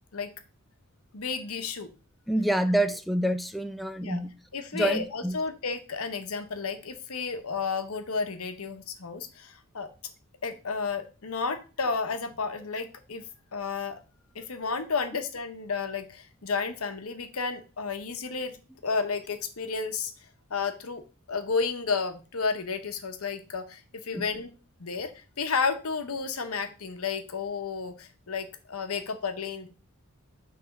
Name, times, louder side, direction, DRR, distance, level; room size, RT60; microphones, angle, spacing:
voice 1, 1.1-1.9 4.0-4.2 4.5-9.9 10.4-13.2 13.5-14.0 14.3-18.5 18.8-20.1 20.5-21.0 21.3-24.5 24.8-29.7, left 5 dB, 85° left, 0.9 m, -32 dB
voice 2, 2.3-4.3 4.7-5.4 24.1-24.3, right 1 dB, ahead, 0.4 m, -27 dB
5.8 x 3.5 x 5.2 m
head